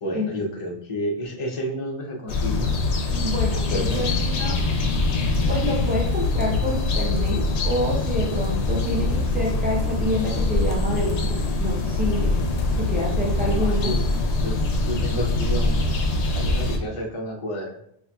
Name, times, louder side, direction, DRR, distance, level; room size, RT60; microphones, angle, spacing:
voice 1, 0.0-2.8 3.4-4.1 13.6-14.1 14.4-14.5 14.8-15.9 16.3-17.8, equal, 35° left, -1 dB, 0.6 m, -30 dB
sound 1, 2.3-16.8, left 2 dB, 85° left, 0.9 m, -23 dB
voice 2, 3.1-4.5 5.5-12.3 12.8-13.9, equal, 10° right, -2 dB, 0.5 m, -27 dB
4.0 x 2.8 x 2.3 m, 0.73 s
omnidirectional pair, 1.1 m